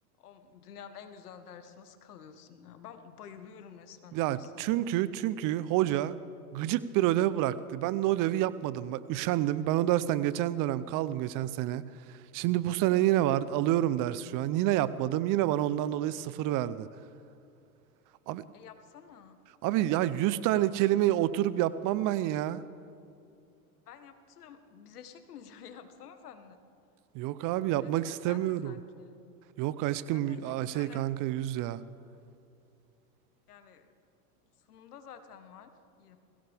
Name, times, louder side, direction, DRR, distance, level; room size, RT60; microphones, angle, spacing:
voice 1, 0.2-4.6 13.2-13.3 18.5-19.4 23.9-26.6 27.8-29.2 30.1-31.0 33.5-33.9 34.6-35.7 36.0-36.2, left 8 dB, 85° left, 9 dB, 1.5 m, -50 dB
voice 2, 4.1-6.1 6.5-11.8 12.1-16.9 18.3-18.4 19.6-22.6 27.1-28.7 29.6-31.8, right 14 dB, 45° right, 16 dB, 0.7 m, -28 dB
21.5 x 16.5 x 3.5 m, 2.6 s
hypercardioid pair, 95°, 45 cm